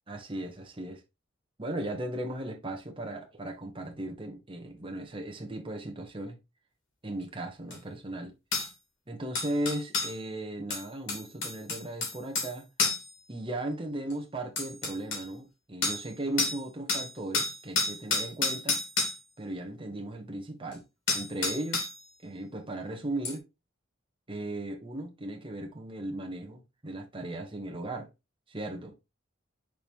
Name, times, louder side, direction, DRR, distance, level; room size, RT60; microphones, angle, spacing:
voice 1, 0.1-1.0 1.6-6.4 7.0-8.3 9.1-12.7 13.3-18.8 19.4-20.8 21.1-21.9 22.2-23.4 24.3-28.1 28.5-28.9, right 1 dB, 25° right, 1.3 m, -37 dB
sound 1, 7.7-7.8 8.5-8.7 9.4-10.2 10.7-12.5 12.8-13.1 14.1-14.2 14.6-15.3 15.8-16.1 16.4-16.6 16.9-19.2 20.7-20.8 21.1-22.0 23.3-23.4, left 3 dB, 75° left, 2.6 m, -30 dB
6.1 x 4.7 x 3.5 m
head